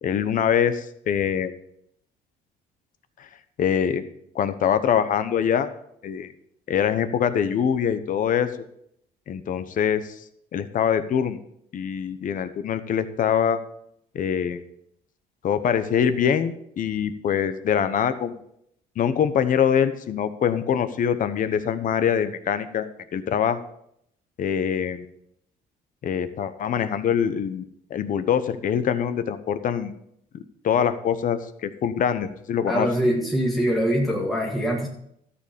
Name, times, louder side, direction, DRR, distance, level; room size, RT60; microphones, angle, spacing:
voice 1, 0.0-1.5 3.2-3.3 3.6-4.0 4.3-5.7 6.0-6.3 6.7-8.5 9.3-10.1 10.5-11.4 11.7-13.6 14.1-14.6 15.4-18.4 19.0-23.6 24.4-25.1 26.0-30.0 30.3-32.9, left 8 dB, 50° left, 12 dB, 1.0 m, -24 dB
voice 2, 32.7-34.9, equal, ahead, -3 dB, 1.9 m, -23 dB
13.0 x 7.1 x 5.2 m, 0.72 s
cardioid pair, 110°, 17 cm